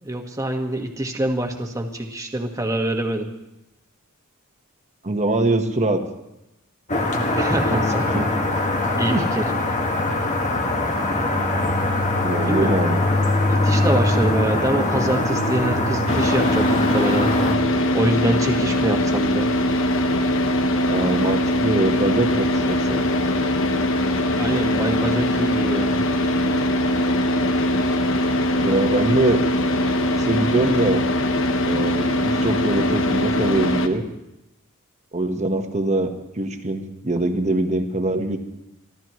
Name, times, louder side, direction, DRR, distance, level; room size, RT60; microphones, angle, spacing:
voice 1, 0.0-3.3 7.3-8.2 9.0-9.4 12.4-12.7 13.5-17.3 17.9-19.5 24.4-26.0, right 1 dB, 15° right, 3 dB, 1.6 m, -25 dB
voice 2, 5.0-6.0 7.7-7.8 8.1-8.3 9.1-9.2 12.2-13.0 20.9-23.0 28.6-29.4 30.2-31.0 31.6-34.1 35.1-36.1 36.3-38.4, right 2 dB, 35° right, 5 dB, 1.3 m, -23 dB
sound 1, 6.9-17.6, left 2 dB, 35° left, 1.7 m, -22 dB
Car / Idling, 16.1-33.9, left 1 dB, 65° left, 1.1 m, -21 dB
29.0 x 13.0 x 3.2 m, 0.92 s
head